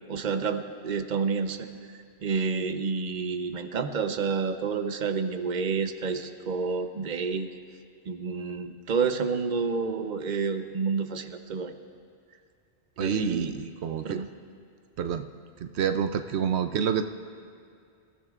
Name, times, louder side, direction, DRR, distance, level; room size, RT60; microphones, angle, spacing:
voice 1, 0.1-1.6 2.2-7.5 8.1-11.7 13.0-13.5 14.0-14.3, right 5 dB, 45° right, 7 dB, 0.9 m, -29 dB
voice 2, 13.0-14.2 15.0-15.3 15.6-17.0, right 7 dB, 85° right, 8 dB, 0.9 m, -28 dB
28.0 x 15.0 x 2.4 m, 2.3 s
omnidirectional pair, 1.1 m